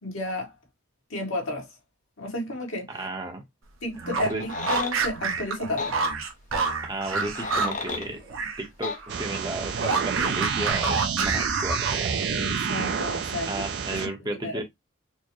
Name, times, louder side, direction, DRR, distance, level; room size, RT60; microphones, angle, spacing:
voice 1, 0.0-0.5 1.1-1.7 2.2-2.9 3.8-6.0 12.3-13.5 14.4-14.6, left 2 dB, 70° left, 1.6 m, -32 dB
voice 2, 2.9-3.4 4.3-4.5 6.8-8.2 8.6-12.2 13.4-14.6, right 2 dB, 20° right, 0.8 m, -34 dB
sound 1, 3.9-8.7 8.9-12.2, right 4 dB, 70° right, 0.9 m, -28 dB
sound 2, 4.3-5.0 5.8-5.9 7.1-8.1 8.8-9.0, left 4 dB, 35° left, 0.6 m, -33 dB
sound 3, 9.1-14.1, right 6 dB, 50° right, 0.4 m, -28 dB
4.5 x 2.1 x 3.0 m
head